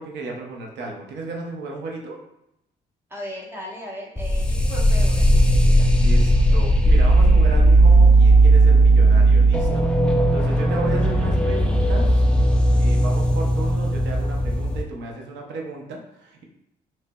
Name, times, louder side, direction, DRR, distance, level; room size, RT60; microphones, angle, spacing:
voice 1, 0.0-2.2 6.0-9.9 10.3-12.3 12.8-16.4, right 3 dB, 90° right, 1 dB, 0.7 m, -34 dB
voice 2, 3.1-5.9, equal, 15° right, -3 dB, 1.1 m, -37 dB
sound 1, 4.2-14.8, right 2 dB, 5° left, 0.4 m, -16 dB
3.8 x 3.2 x 2.2 m, 0.83 s
cardioid pair, 95°, 17 cm